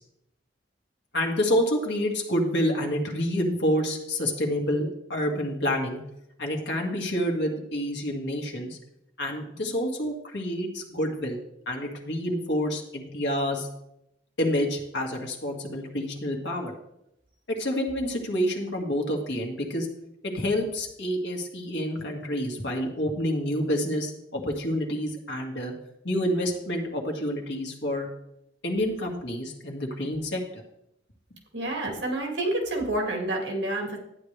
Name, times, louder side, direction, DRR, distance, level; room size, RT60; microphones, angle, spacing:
voice 1, 1.1-6.0 6.4-8.8 9.2-11.4 11.7-13.7 14.4-16.8 17.5-19.9 20.2-25.7 26.0-28.1 28.6-30.6, equal, 70° left, 1 dB, 2.0 m, -28 dB
voice 2, 31.5-34.0, right 1 dB, 70° right, 1 dB, 2.4 m, -28 dB
11.5 x 9.5 x 3.3 m, 0.81 s
head